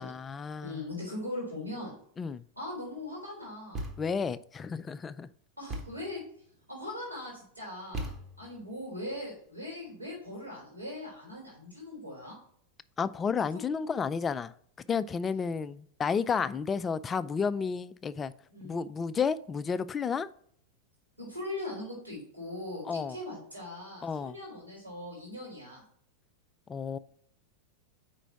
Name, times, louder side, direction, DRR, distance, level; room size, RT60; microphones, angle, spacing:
voice 1, 0.0-0.8 2.2-2.4 4.0-5.3 13.0-14.5 14.9-18.3 18.6-20.3 22.9-23.2 24.0-24.4 26.7-27.0, left 6 dB, 20° left, 0.3 m, -31 dB
voice 2, 0.6-1.9 2.6-3.9 5.6-6.2 6.7-12.3 18.5-18.8 21.2-25.8, left 1 dB, 85° right, 3.0 m, -40 dB
Thump thud, 3.7-4.3 5.7-6.2 7.9-8.6, right 1 dB, 25° right, 1.0 m, -39 dB
5.0 x 4.5 x 5.8 m
figure-of-eight pair, 90°, 0 cm